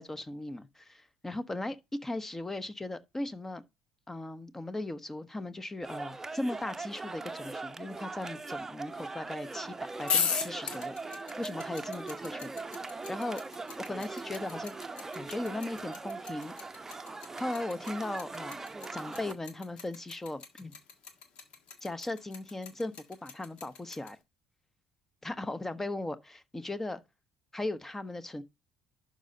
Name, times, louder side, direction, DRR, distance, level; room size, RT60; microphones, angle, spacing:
voice 1, 0.0-1.8 2.0-3.6 4.1-12.7 13.1-13.4 13.9-14.8 15.1-16.5 16.8-17.0 17.4-18.6 18.9-20.7 21.8-24.2 25.2-27.0 27.5-28.4, left 2 dB, 15° left, 1.0 m, -38 dB
sound 1, 5.8-19.3, right 3 dB, 20° right, 0.8 m, -40 dB
sound 2, 10.0-24.1, left 6 dB, 55° left, 1.6 m, -36 dB
11.5 x 5.3 x 2.8 m
hypercardioid pair, 55°, 2 cm